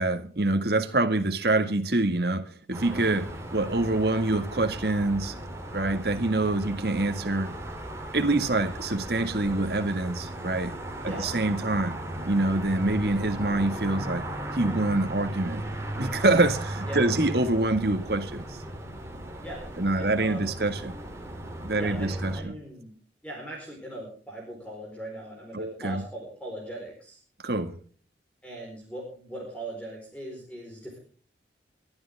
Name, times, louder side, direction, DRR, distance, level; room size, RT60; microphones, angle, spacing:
voice 1, 0.0-5.3 5.7-7.5 8.1-10.7 11.0-12.0 12.2-14.2 14.5-15.6 16.0-18.6 19.8-20.9 21.6-22.6 25.5-26.0 27.4-27.8, right 2 dB, 55° right, 1.9 m, -26 dB
sound 1, 2.7-22.4, right 1 dB, 15° right, 3.2 m, -36 dB
voice 2, 19.4-20.6 21.8-22.9 23.2-27.2 28.4-31.0, right 1 dB, 5° left, 4.4 m, -40 dB
23.0 x 12.5 x 3.6 m
head